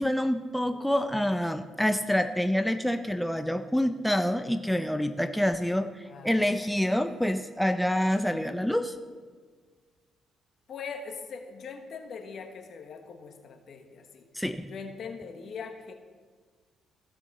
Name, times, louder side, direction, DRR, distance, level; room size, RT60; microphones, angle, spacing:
voice 1, 0.0-9.0 14.3-14.7, equal, 5° left, 8 dB, 0.5 m, -27 dB
voice 2, 6.0-6.6 7.1-7.2 10.7-14.3 14.7-15.9, left 5 dB, 60° left, 5 dB, 1.2 m, -41 dB
15.5 x 5.6 x 4.1 m, 1.5 s
cardioid pair, 90°, 0 cm